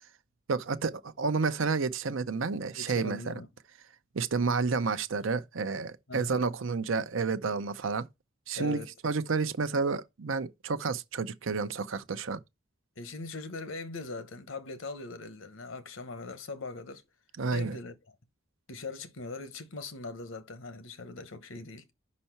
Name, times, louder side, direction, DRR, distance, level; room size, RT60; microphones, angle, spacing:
voice 1, 0.5-3.3 4.1-8.1 8.5-12.4 17.4-17.8, right 4 dB, 75° right, 0.6 m, -30 dB
voice 2, 2.8-3.5 6.1-6.4 8.5-8.9 13.0-17.0 17.5-17.9 18.7-21.9, left 3 dB, 80° left, 1.0 m, -41 dB
5.5 x 4.2 x 5.7 m
head